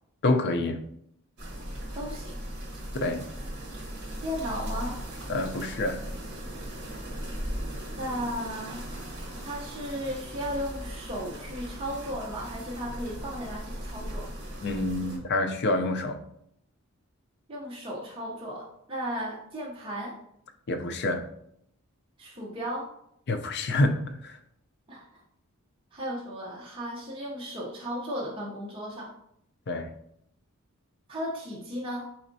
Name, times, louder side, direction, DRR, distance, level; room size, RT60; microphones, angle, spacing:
voice 1, 0.2-0.8 2.9-3.3 5.3-6.0 14.6-16.2 20.7-21.3 23.3-24.4 29.7-29.9, left 2 dB, 50° left, 6 dB, 0.5 m, -27 dB
sound 1, 1.4-15.2, equal, 50° right, 1.2 m, -38 dB
voice 2, 1.9-2.4 4.2-5.0 8.0-8.9 9.4-14.3 17.5-20.1 22.2-22.9 24.9-25.2 25.9-29.1 31.1-32.1, equal, 25° right, -5 dB, 0.6 m, -35 dB
4.3 x 4.1 x 2.6 m, 0.74 s
head